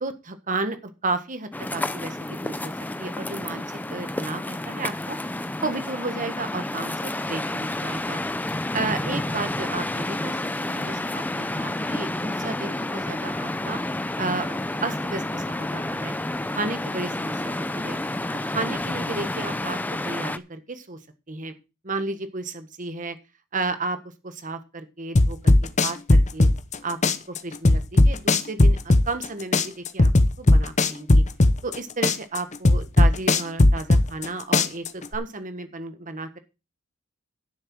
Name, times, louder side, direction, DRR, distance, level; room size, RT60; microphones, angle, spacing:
voice 1, 0.0-2.7 3.0-3.6 3.9-5.2 5.6-8.2 8.7-10.3 10.6-13.8 14.2-16.1 16.5-18.0 18.4-19.8 20.0-21.0 21.3-21.5 21.8-23.2 23.5-24.0 24.2-25.5 25.8-26.5 26.8-27.0 27.3-30.1 30.4-31.2 31.6-36.4, right 3 dB, 40° right, 9 dB, 1.4 m, -32 dB
sound 1, 1.5-20.4, left 1 dB, 10° left, 0.5 m, -30 dB
sound 2, 25.2-26.8 27.0-29.3 29.5-31.8 32.0-34.3 34.5-35.2, left 2 dB, 35° left, 0.8 m, -16 dB
11.0 x 6.7 x 6.1 m, 0.29 s
head